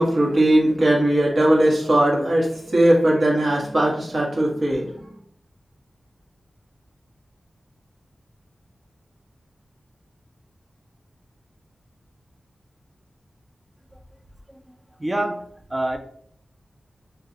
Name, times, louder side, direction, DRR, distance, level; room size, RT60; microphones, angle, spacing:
voice 1, 0.0-4.9, right 1 dB, 55° right, -3 dB, 1.1 m, -19 dB
voice 2, 14.5-15.4 15.7-16.0, right 1 dB, 20° right, 6 dB, 0.4 m, -27 dB
3.1 x 2.3 x 3.7 m, 0.67 s
wide cardioid pair, 110°, 0 cm